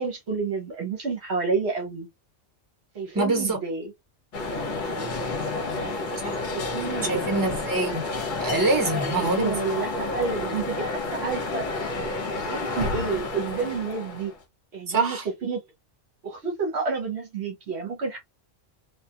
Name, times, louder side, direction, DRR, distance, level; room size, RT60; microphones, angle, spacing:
voice 1, 0.0-2.1 2.9-3.9 5.7-6.0 6.5-7.4 8.9-11.7 12.5-14.3 14.7-15.6 16.2-18.2, right 4 dB, 65° right, 1.0 m, -30 dB
voice 2, 3.1-3.6 6.2-6.4 7.0-9.6 14.9-15.3, right 3 dB, 20° right, 1.0 m, -25 dB
sound 1, 4.3-14.4, left 2 dB, 45° left, 0.8 m, -30 dB
2.3 x 2.3 x 2.7 m
omnidirectional pair, 1.2 m